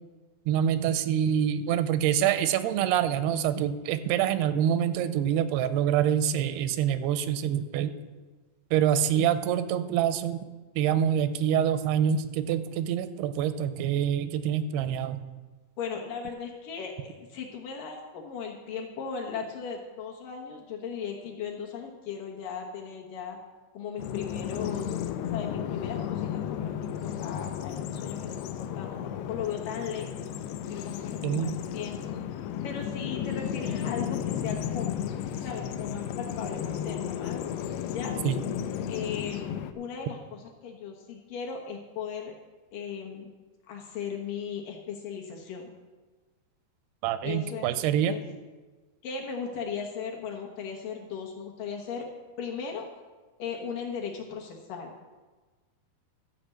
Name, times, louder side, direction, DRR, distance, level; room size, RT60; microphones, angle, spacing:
voice 1, 0.5-7.9 8.7-10.4 10.8-15.2 31.2-31.5 38.2-38.4 47.0-48.1, right 9 dB, 85° right, 12 dB, 2.6 m, -26 dB
voice 2, 15.8-23.4 23.7-25.0 25.3-26.7 27.0-30.3 30.6-32.2 32.6-35.0 35.4-37.4 37.9-38.2 38.9-42.3 42.7-43.3 43.7-45.7 47.2-47.7 48.0-48.2 49.0-52.1 52.4-52.9 53.4-54.9, left 6 dB, 65° left, 0 dB, 2.5 m, -37 dB
Bird vocalization bird call bird song, 24.0-39.7, left 9 dB, 85° left, 2.6 m, -33 dB
13.5 x 5.1 x 7.6 m, 1.3 s
omnidirectional pair, 4.5 m